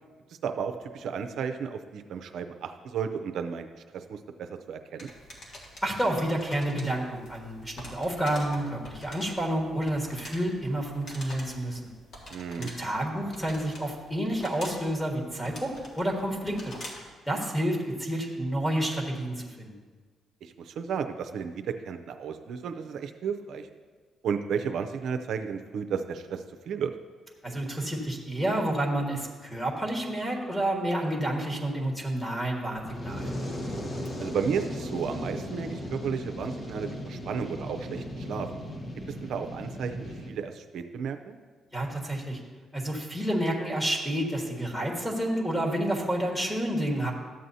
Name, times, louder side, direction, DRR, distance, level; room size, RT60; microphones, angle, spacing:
voice 1, 0.4-3.7 3.9-5.1 12.3-12.7 20.4-23.7 24.2-26.9 34.2-38.5 39.2-41.3, right 6 dB, 70° right, 7 dB, 0.5 m, -33 dB
sound 1, 5.0-17.1, left 1 dB, 60° left, 2.0 m, -46 dB
voice 2, 5.8-11.8 12.5-16.7 17.3-19.7 27.4-33.4 41.7-42.4 42.7-47.1, right 1 dB, 5° left, 0 dB, 1.5 m, -29 dB
Fire, 32.7-40.3, equal, 40° left, 1.2 m, -36 dB
13.0 x 7.5 x 2.7 m, 1.5 s
cardioid pair, 90°, 0 cm